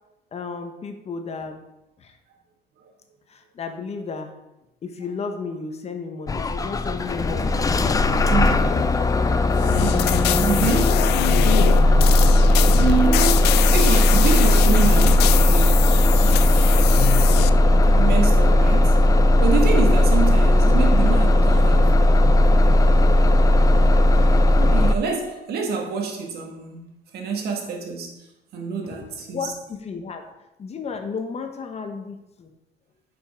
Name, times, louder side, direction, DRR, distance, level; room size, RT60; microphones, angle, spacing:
voice 1, 0.3-1.6 2.0-2.1 3.3-4.3 4.8-8.9 13.0-13.8 29.3-30.2 30.6-32.5, left 5 dB, 40° left, 1.1 m, -33 dB
Bus / Engine starting, 6.3-24.9, left 1 dB, 20° left, 0.5 m, -17 dB
sound 1, 9.6-17.5, left 15 dB, 75° left, 0.4 m, -25 dB
voice 2, 9.8-11.1 12.7-15.9 17.9-19.0 19.4-21.9 22.6-22.8 24.2-28.1 28.5-29.5 30.2-30.3, right 5 dB, 70° right, 1.8 m, -27 dB
7.0 x 5.4 x 5.2 m
cardioid pair, 110°, 17 cm